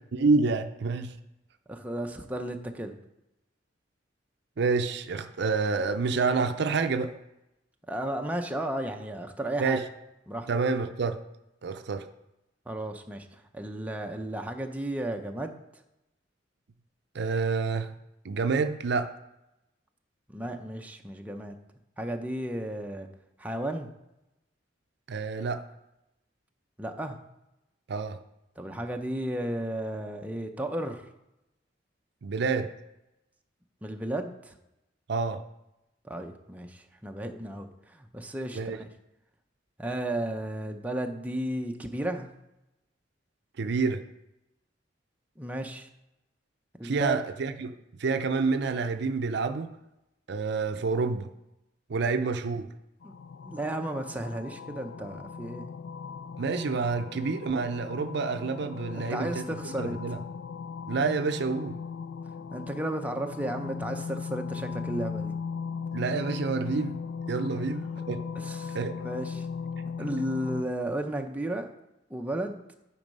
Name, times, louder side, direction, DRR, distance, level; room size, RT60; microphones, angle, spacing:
voice 1, 0.1-1.1 4.6-7.1 9.6-9.8 10.5-11.2 11.6-12.1 17.1-17.9 18.2-19.1 25.1-25.6 27.9-28.2 32.2-32.7 35.1-35.4 38.5-38.8 43.6-44.0 46.8-49.7 50.3-51.3 51.9-52.7 56.4-59.4 59.8-60.2 60.9-61.8 65.9-67.0 67.3-68.2 68.7-68.9, right 4 dB, 65° right, 9 dB, 0.5 m, -28 dB
voice 2, 1.7-3.0 7.9-9.8 10.3-10.5 12.7-15.8 20.3-21.6 22.0-23.1 23.4-23.9 26.8-27.2 28.6-31.1 33.8-34.5 36.0-38.9 39.8-42.3 45.4-45.9 46.8-47.2 53.0-53.1 53.4-55.7 58.9-60.0 62.5-65.3 67.5-67.7 68.3-69.5 70.0-71.7 72.1-72.6, right 1 dB, 10° right, 4 dB, 0.6 m, -34 dB
sound 1, 53.0-70.6, left 5 dB, 70° left, 0.4 m, -38 dB
9.3 x 4.6 x 5.3 m, 0.91 s
head